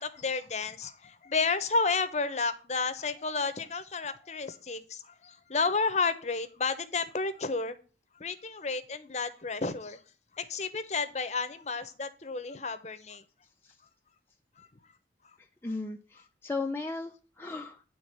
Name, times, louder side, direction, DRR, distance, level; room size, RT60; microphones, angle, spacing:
voice 1, 0.0-7.8 8.1-10.0 10.3-13.2 14.6-14.7 15.2-15.4, left 4 dB, 40° left, 0.7 m, -31 dB
voice 2, 15.4-17.8, left 3 dB, 15° left, 0.4 m, -36 dB
9.3 x 3.9 x 6.5 m
head